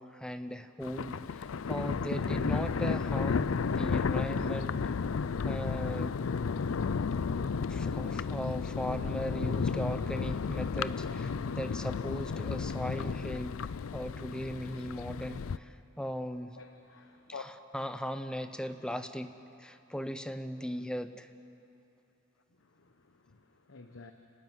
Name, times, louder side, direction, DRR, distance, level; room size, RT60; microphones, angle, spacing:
voice 1, 0.0-4.8 5.4-6.1 7.4-13.6 13.9-16.6 17.7-19.3 19.6-21.3, equal, 5° left, 9 dB, 0.8 m, -38 dB
Thunder, 0.8-15.6, left 5 dB, 90° left, 0.5 m, -33 dB
voice 2, 16.5-17.4 22.5-24.1, left 5 dB, 65° left, 5 dB, 1.1 m, -49 dB
30.0 x 13.0 x 9.5 m, 2.9 s
head